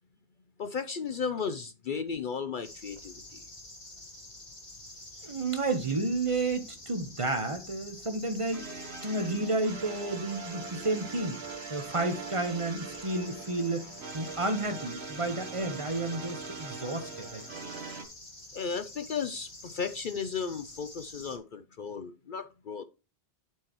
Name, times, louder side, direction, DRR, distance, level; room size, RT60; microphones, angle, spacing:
voice 1, 0.6-3.4 18.5-22.8, left 6 dB, 55° left, 0.7 m, -35 dB
sound 1, 2.6-21.4, left 2 dB, 40° left, 2.5 m, -48 dB
voice 2, 5.2-11.4 11.7-13.9 14.1-17.4, right 2 dB, 30° right, 1.1 m, -31 dB
sound 2, 8.5-18.0, right 5 dB, 70° right, 1.4 m, -42 dB
12.0 x 4.7 x 3.0 m
omnidirectional pair, 1.1 m